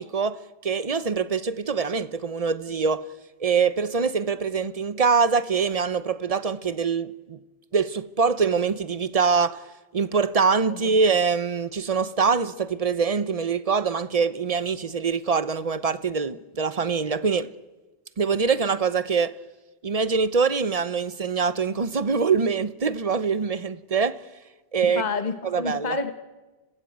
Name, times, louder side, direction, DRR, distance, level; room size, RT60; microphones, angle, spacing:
voice 1, 0.0-3.1 3.4-7.4 7.7-9.6 9.9-17.5 18.2-19.4 19.8-24.2 24.7-25.0 25.4-26.0, right 5 dB, 40° right, 0.9 m, -24 dB
voice 2, 24.8-26.1, left 4 dB, 45° left, 1.4 m, -29 dB
26.5 x 16.5 x 8.6 m
omnidirectional pair, 1.1 m